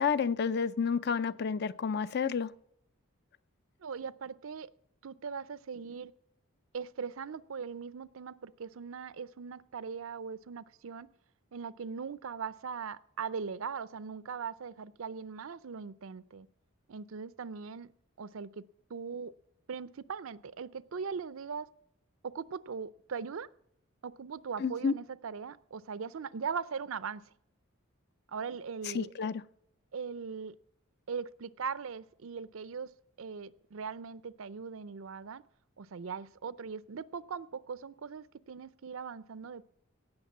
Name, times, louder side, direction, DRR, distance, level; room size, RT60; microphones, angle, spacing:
voice 1, 0.0-2.5 24.6-24.9 28.8-29.4, left 6 dB, 50° left, 16 dB, 0.4 m, -30 dB
voice 2, 3.8-4.7 5.0-6.1 6.7-11.1 11.5-16.5 16.9-17.9 18.2-18.6 18.9-19.3 19.7-21.7 22.2-23.5 24.0-27.2 28.3-29.1 29.9-30.5 31.1-32.9 33.2-35.4 35.8-39.6, right 6 dB, 70° right, 17 dB, 0.5 m, -40 dB
17.5 x 6.6 x 7.2 m, 0.74 s
head